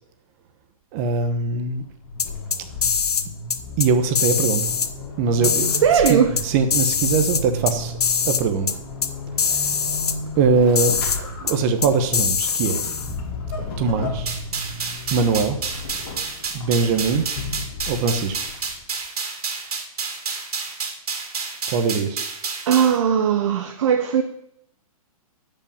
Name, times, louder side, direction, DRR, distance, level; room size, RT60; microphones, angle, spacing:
voice 1, 0.9-1.8 3.8-4.7 5.2-5.7 6.1-7.9 8.3-8.8 9.4-9.7 10.4-12.9 13.8-14.3 15.1-15.6 16.5-17.3 17.9-18.4 21.7-22.2, right 5 dB, 25° right, 1.1 m, -21 dB
Vehicle / Accelerating revving vroom / Squeak, 1.7-18.9, left 2 dB, 35° left, 2.8 m, -34 dB
sound 1, 2.2-3.2 3.5-3.9 4.2-4.9 5.4-6.4 6.7-7.7 8.0-8.4 8.7-8.8 9.0-9.1 9.4-10.1 10.8-11.2 11.5-11.6 11.8-13.1, left 6 dB, 85° left, 1.1 m, -22 dB
voice 2, 5.7-6.3 22.7-24.2, right 8 dB, 50° right, 0.9 m, -18 dB
sound 2, 14.3-23.0, right 5 dB, 85° right, 2.7 m, -30 dB
12.5 x 5.6 x 7.1 m
hypercardioid pair, 160°, 19 cm